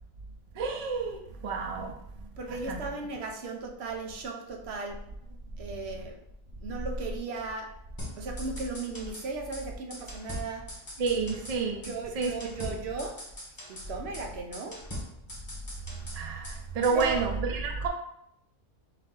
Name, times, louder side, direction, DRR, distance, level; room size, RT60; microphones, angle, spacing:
voice 1, 0.6-1.9 2.2-2.3 2.7-2.8 11.0-12.3 12.6-12.8 16.1-17.9, right 4 dB, 85° right, 2 dB, 0.3 m, -30 dB
voice 2, 2.4-5.1 5.6-6.2 6.6-7.7 8.2-10.7 11.8-13.2 13.7-14.8 16.9-17.2, right 3 dB, 60° right, 2 dB, 0.8 m, -36 dB
sound 1, 8.0-9.3 9.5-9.6 9.9-11.6 11.8-12.0 12.2-13.9 14.1-14.3 14.5-16.6 16.8-17.2, left 1 dB, 20° left, 0.6 m, -42 dB
3.8 x 2.7 x 3.7 m, 0.76 s
omnidirectional pair, 1.4 m